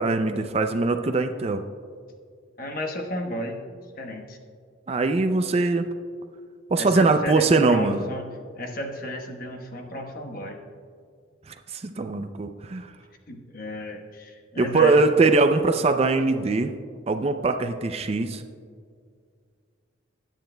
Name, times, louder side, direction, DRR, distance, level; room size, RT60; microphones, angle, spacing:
voice 1, 0.0-1.6 4.9-5.9 6.7-8.1 11.5-12.9 14.6-16.7 17.1-18.4, right 3 dB, 30° right, 7 dB, 0.4 m, -22 dB
voice 2, 2.6-3.6 4.0-4.4 6.8-8.3 8.6-10.6 13.3-15.0, left 1 dB, 45° left, 2 dB, 1.2 m, -33 dB
20.5 x 9.2 x 2.2 m, 2.1 s
head